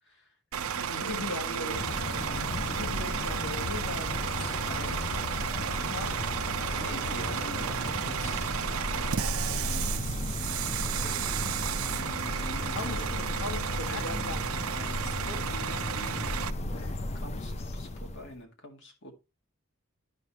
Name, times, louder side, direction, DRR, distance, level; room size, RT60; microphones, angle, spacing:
voice 1, 0.0-2.4 4.6-5.1 5.5-6.4 6.7-10.2 10.6-11.3 11.7-13.2 13.9-14.0 14.6-16.8 17.1-19.2, equal, 60° left, 2.0 m, -45 dB
Bus / Idling, 0.5-16.5, right 8 dB, 80° right, 0.5 m, -33 dB
voice 2, 0.9-1.8 2.7-4.3 5.9-6.2 12.7-14.6 16.7-17.0, left 3 dB, 90° left, 1.4 m, -39 dB
sound 1, 1.7-18.4, left 2 dB, 30° left, 0.5 m, -35 dB
10.5 x 5.3 x 3.0 m
head